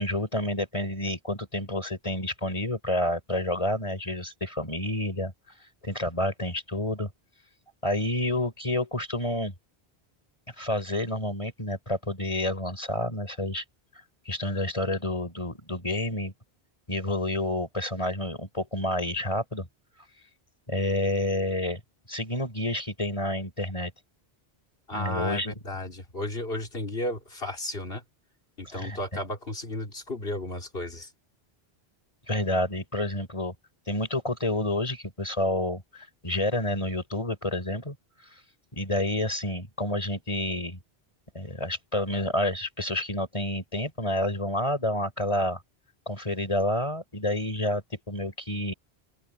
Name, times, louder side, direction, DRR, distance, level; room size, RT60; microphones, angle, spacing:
voice 1, 0.0-5.3 5.8-7.1 7.8-9.5 10.6-13.6 14.3-16.3 16.9-19.7 20.7-21.8 22.1-23.9 24.9-25.5 28.6-29.0 32.3-33.5 33.9-38.0 38.3-38.4 38.7-40.8 41.3-45.6 46.1-48.7, left 1 dB, 30° left, 4.3 m, -29 dB
voice 2, 24.9-28.0 28.6-31.1, left 1 dB, 65° left, 3.7 m, -33 dB
open air
omnidirectional pair, 1.1 m